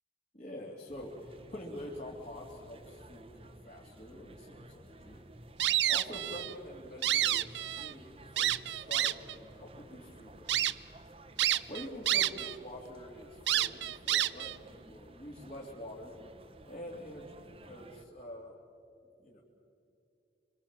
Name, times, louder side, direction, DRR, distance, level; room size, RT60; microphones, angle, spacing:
voice 1, 0.3-5.2 5.9-10.7 11.7-16.2 16.7-18.6 19.2-19.4, left 1 dB, 40° left, -4 dB, 2.6 m, -46 dB
sound 1, 0.9-18.0, right 1 dB, 30° right, 1.1 m, -54 dB
sound 2, 5.6-6.5 6.9-7.9 8.4-9.3 9.9-10.0 10.5-10.7 11.4-12.5 12.8-12.9 13.5-14.6, right 13 dB, 75° right, 0.6 m, -29 dB
26.0 x 25.5 x 7.4 m, 2.7 s
head